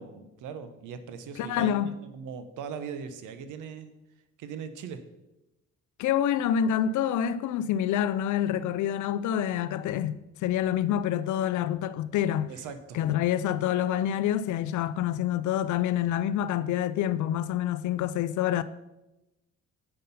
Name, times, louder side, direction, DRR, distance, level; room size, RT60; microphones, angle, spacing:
voice 1, 0.0-3.9 4.4-5.0 12.5-13.0, right 6 dB, 85° right, 0.9 m, -40 dB
voice 2, 1.4-2.0 6.0-12.5 12.9-18.6, left 10 dB, 80° left, 0.5 m, -27 dB
8.9 x 5.4 x 5.7 m
cardioid pair, 90°, 30 cm